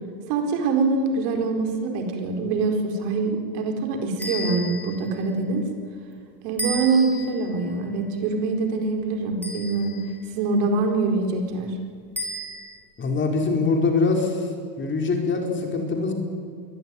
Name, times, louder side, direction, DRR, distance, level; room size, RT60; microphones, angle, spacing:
voice 1, 0.3-5.7 6.4-10.0 10.3-11.8, right 3 dB, 70° right, 4 dB, 4.5 m, -24 dB
sound 1, 4.2-5.1 6.6-7.4 9.4-10.1 12.2-12.8, equal, 5° left, 5.1 m, -33 dB
voice 2, 13.0-14.4 14.8-16.1, left 4 dB, 25° left, 3 dB, 4.5 m, -23 dB
23.0 x 18.5 x 9.8 m, 2.2 s
supercardioid pair, 135°, 47 cm